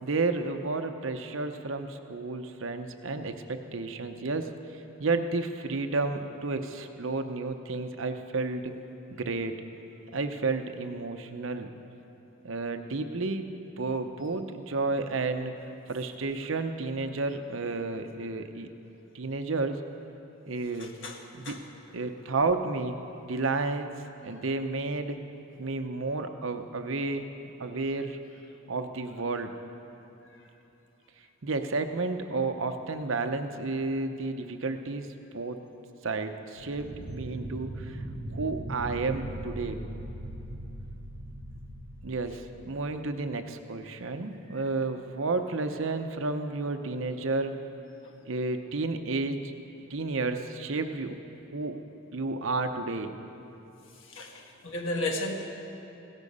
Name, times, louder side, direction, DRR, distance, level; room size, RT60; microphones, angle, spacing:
voice 1, 0.0-4.5 5.0-8.7 9.1-9.6 10.1-11.7 12.4-13.5 13.8-15.5 15.9-18.7 19.1-19.8 20.5-20.9 21.3-21.6 21.9-23.0 23.3-23.9 24.2-25.2 25.6-27.3 27.6-28.2 28.7-29.6 31.4-35.1 35.3-35.6 36.0-38.0 38.3-39.8 42.0-47.6 48.3-49.5 49.9-51.2 51.5-51.8 52.1-53.1, right 3 dB, 65° right, 7 dB, 0.8 m, -31 dB
voice 2, 20.8-21.2 21.4-21.6 21.9-22.0 48.0-48.3 54.1-55.3, left 2 dB, 60° left, 2 dB, 1.5 m, -34 dB
sound 1, 36.6-43.0, right 1 dB, 85° right, 1.0 m, -40 dB
16.5 x 13.5 x 5.4 m, 3.0 s
head